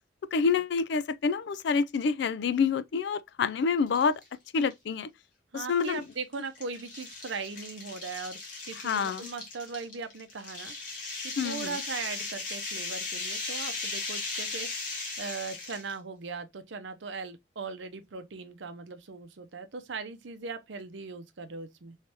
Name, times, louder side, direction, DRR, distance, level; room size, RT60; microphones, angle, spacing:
voice 1, 0.3-4.1 4.5-5.1 5.5-6.0 8.8-9.3 11.4-11.7, left 5 dB, 65° left, 0.3 m, -27 dB
sound 1, 3.9-4.3 4.7-4.8 5.8-15.9, left 3 dB, 45° left, 1.5 m, -37 dB
voice 2, 5.5-8.4 8.6-22.0, right 4 dB, 75° right, 0.6 m, -39 dB
3.4 x 3.2 x 2.8 m
head